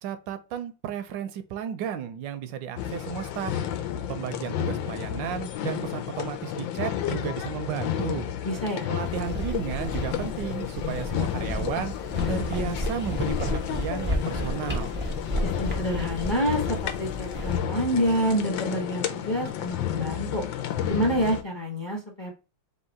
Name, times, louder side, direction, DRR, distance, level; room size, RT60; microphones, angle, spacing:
voice 1, 0.0-3.6 4.1-8.3 8.9-11.9 12.3-15.0, right 9 dB, 80° right, 1.3 m, -33 dB
sound 1, 2.8-21.4, left 10 dB, 90° left, 1.4 m, -31 dB
voice 2, 8.4-8.9 15.4-20.4 20.9-22.4, equal, 25° left, 0.6 m, -28 dB
sound 2, 9.0-17.6, equal, 15° right, 0.3 m, -33 dB
3.7 x 2.8 x 4.3 m
omnidirectional pair, 2.0 m